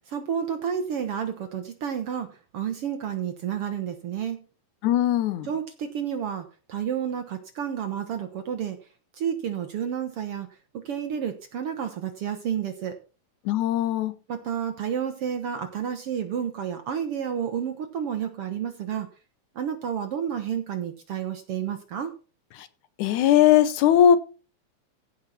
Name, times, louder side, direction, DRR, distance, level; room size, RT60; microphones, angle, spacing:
voice 1, 0.1-4.4 5.5-8.8 9.2-10.5 10.7-13.0 14.3-19.1 19.5-22.1, right 8 dB, 60° right, 1.6 m, -30 dB
voice 2, 4.8-5.5 13.5-14.1 22.5-22.7 23.0-24.2, left 10 dB, 75° left, 2.2 m, -19 dB
15.5 x 5.6 x 5.7 m
omnidirectional pair, 3.6 m